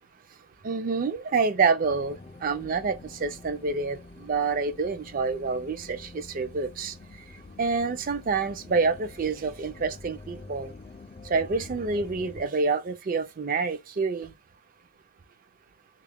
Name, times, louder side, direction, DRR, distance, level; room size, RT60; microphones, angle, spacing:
voice 1, 0.6-6.9 7.6-10.7 11.3-14.3, right 4 dB, 45° right, 0.4 m, -27 dB
sound 1, 1.8-12.5, left 3 dB, 30° left, 0.3 m, -46 dB
3.6 x 2.4 x 3.4 m
head